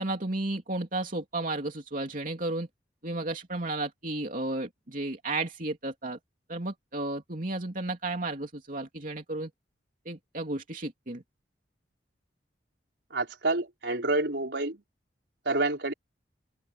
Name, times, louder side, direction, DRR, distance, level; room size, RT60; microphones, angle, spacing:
voice 1, 0.0-2.7 3.0-6.2 6.5-9.5 10.0-11.2, right 2 dB, 50° right, 2.9 m, -33 dB
voice 2, 13.1-14.8 15.4-15.9, right 2 dB, 75° right, 4.8 m, -28 dB
open air
head